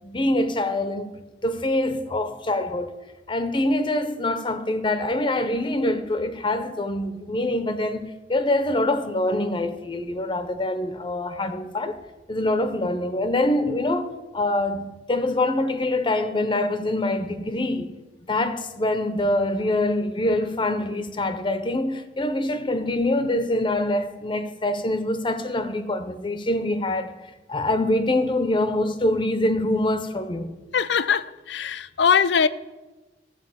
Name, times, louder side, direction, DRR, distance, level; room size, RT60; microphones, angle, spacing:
voice 1, 0.0-1.1 1.4-2.9 3.3-12.0 12.3-17.9 18.3-27.2 27.5-30.5, left 1 dB, 25° left, 0.6 m, -25 dB
voice 2, 30.7-32.5, left 6 dB, 70° left, 0.4 m, -21 dB
14.0 x 4.8 x 7.7 m
head